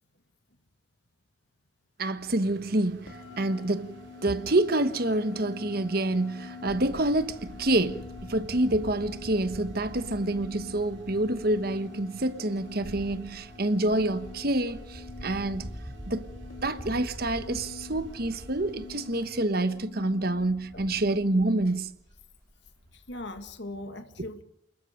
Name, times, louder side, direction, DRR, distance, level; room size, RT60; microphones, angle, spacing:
voice 1, 2.0-15.7 16.1-16.3 16.6-22.0, right 1 dB, 50° right, 1.3 m, -27 dB
sound 1, 2.4-19.4, right 1 dB, 70° right, 4.1 m, -53 dB
sound 2, 3.1-21.8, left 5 dB, 85° left, 2.6 m, -47 dB
sound 3, 6.7-23.6, equal, 10° right, 3.8 m, -46 dB
voice 2, 20.7-21.2 22.9-24.4, left 1 dB, 60° left, 2.0 m, -40 dB
29.0 x 21.0 x 5.2 m
head